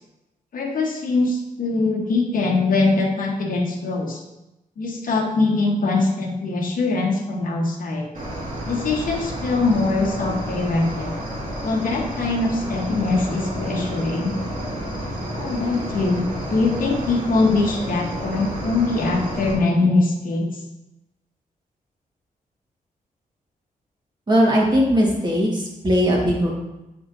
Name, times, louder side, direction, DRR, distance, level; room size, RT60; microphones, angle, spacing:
voice 1, 0.5-4.2 4.8-8.1 8.7-11.1 11.6-14.3 15.4-20.5, left 3 dB, 65° left, 0 dB, 1.1 m, -22 dB
Cricket, 8.1-19.5, equal, 60° right, 2.0 m, -30 dB
voice 2, 24.3-26.5, equal, 30° right, -3 dB, 1.6 m, -19 dB
8.3 x 5.4 x 2.6 m, 0.95 s
wide cardioid pair, 135°, 15 cm